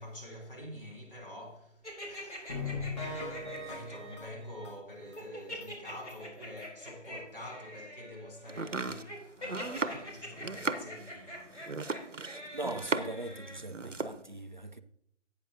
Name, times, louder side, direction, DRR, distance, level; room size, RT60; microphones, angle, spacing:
voice 1, 0.0-2.7 3.3-12.5, left 1 dB, 45° left, 3.2 m, -47 dB
sound 1, 1.8-4.2 5.2-13.6, left 1 dB, 70° left, 3.8 m, -45 dB
sound 2, 2.5-5.2 5.6-5.7 6.1-6.2 6.6-6.7, left 3 dB, 25° left, 0.9 m, -40 dB
Domestic sounds home sounds, 8.5-13.3 13.6-14.2, right 4 dB, 80° right, 0.9 m, -36 dB
voice 2, 12.2-14.8, right 2 dB, 40° right, 0.4 m, -40 dB
12.0 x 9.0 x 2.7 m
figure-of-eight pair, 155°, 37 cm